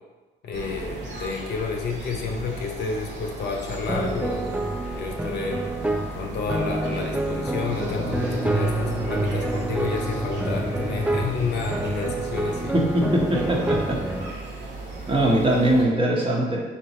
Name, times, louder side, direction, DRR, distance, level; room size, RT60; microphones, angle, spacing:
voice 1, 0.4-4.7 4.9-5.6 6.2-12.8, left 4 dB, 70° left, 1 dB, 0.7 m, -30 dB
sound 1, 0.5-15.8, right 3 dB, 85° right, 1.0 m, -37 dB
sound 2, 3.9-14.3, right 2 dB, 5° right, 0.3 m, -28 dB
sound 3, 7.8-13.6, left 2 dB, 30° left, 0.9 m, -35 dB
voice 2, 12.7-14.0 15.1-16.6, right 1 dB, 30° right, -2 dB, 1.1 m, -21 dB
3.6 x 2.9 x 4.3 m, 1.2 s
cardioid pair, 80°, 18 cm